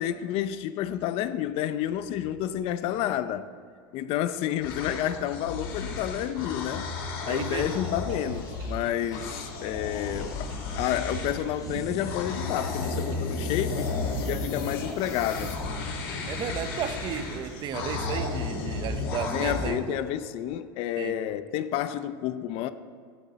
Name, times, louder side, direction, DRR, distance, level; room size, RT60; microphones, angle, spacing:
voice 1, 0.0-3.4 3.9-6.9 7.2-13.9 14.2-15.6 19.3-22.7, left 11 dB, 50° left, 0.6 m, -30 dB
sound 1, 4.0-15.5, left 6 dB, 30° left, 1.5 m, -50 dB
sound 2, 4.6-11.5 12.0-19.7, left 3 dB, 75° left, 3.5 m, -33 dB
voice 2, 7.3-7.8 16.3-20.0 21.0-21.3, right 8 dB, 40° right, 0.8 m, -34 dB
Wind / Ocean / Boat Water vehicle, 7.4-19.0, right 2 dB, 55° right, 2.2 m, -45 dB
13.0 x 11.5 x 4.2 m
supercardioid pair, 115°, 12 cm